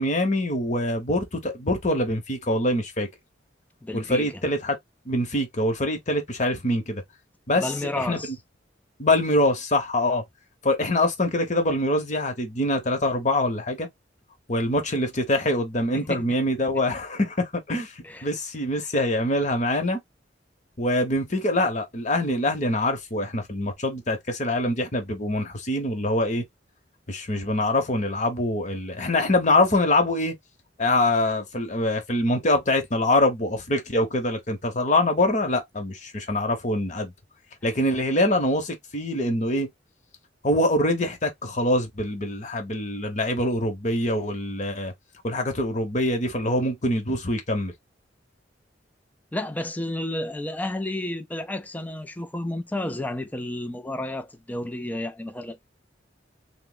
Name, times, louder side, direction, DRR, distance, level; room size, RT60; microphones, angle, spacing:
voice 1, 0.0-3.1 3.9-4.8 5.1-7.0 7.5-8.2 9.0-10.2 10.6-13.9 14.5-20.0 20.8-26.4 27.1-30.3 30.8-37.1 37.6-39.7 40.4-44.9 45.2-47.7, left 1 dB, 40° left, 1.0 m, -24 dB
voice 2, 3.8-4.3 7.5-8.3 15.9-16.2 18.0-18.3 49.3-55.7, left 1 dB, 10° left, 0.5 m, -31 dB
3.5 x 2.1 x 3.8 m
head